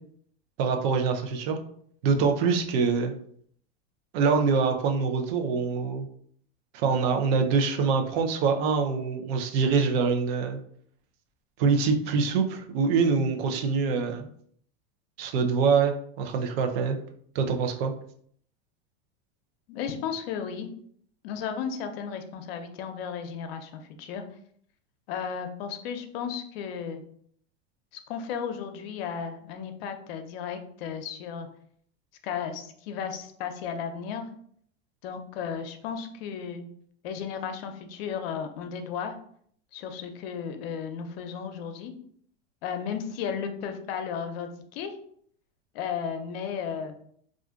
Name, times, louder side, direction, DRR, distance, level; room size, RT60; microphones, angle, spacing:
voice 1, 0.6-1.6 2.0-3.1 4.1-6.1 6.7-10.6 11.6-14.3 15.2-17.0 17.3-17.9, right 5 dB, 65° right, 4 dB, 0.6 m, -24 dB
voice 2, 19.7-20.7 21.2-24.2 25.1-27.0 28.1-31.5 32.2-34.3 35.0-36.7 37.0-39.2 39.7-41.9 42.6-45.0 45.7-46.9, left 7 dB, 65° left, 6 dB, 0.6 m, -34 dB
2.5 x 2.4 x 3.6 m, 0.63 s
supercardioid pair, 120°, 32 cm